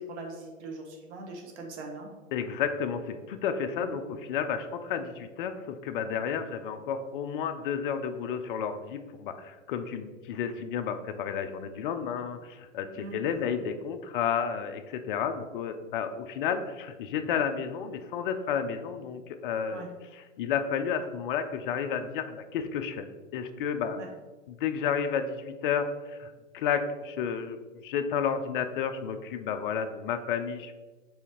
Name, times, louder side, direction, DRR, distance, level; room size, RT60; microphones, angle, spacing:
voice 1, 0.0-2.1 3.8-4.1 13.0-13.5 19.7-19.9 23.9-24.1, right 2 dB, 55° right, 1 dB, 1.0 m, -41 dB
voice 2, 2.3-19.9 20.1-23.1 23.3-24.0 24.5-30.7, left 7 dB, 45° left, 9 dB, 0.4 m, -31 dB
4.7 x 3.4 x 2.9 m, 1.3 s
hypercardioid pair, 130°, 40 cm